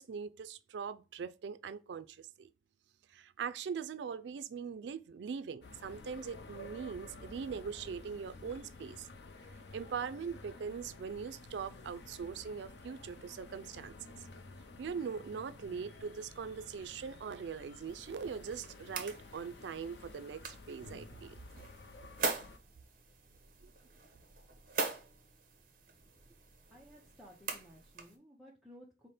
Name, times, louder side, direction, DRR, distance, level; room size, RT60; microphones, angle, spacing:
voice 1, 0.0-2.5 3.1-9.1 9.7-13.9 14.8-21.4 23.6-23.7, right 6 dB, 80° right, 0.3 m, -41 dB
sound 1, 5.6-22.6, left 2 dB, 75° left, 0.6 m, -52 dB
sound 2, 17.9-28.2, right 4 dB, 50° right, 0.8 m, -43 dB
voice 2, 26.7-29.1, equal, ahead, 0.6 m, -57 dB
4.9 x 2.1 x 4.1 m
head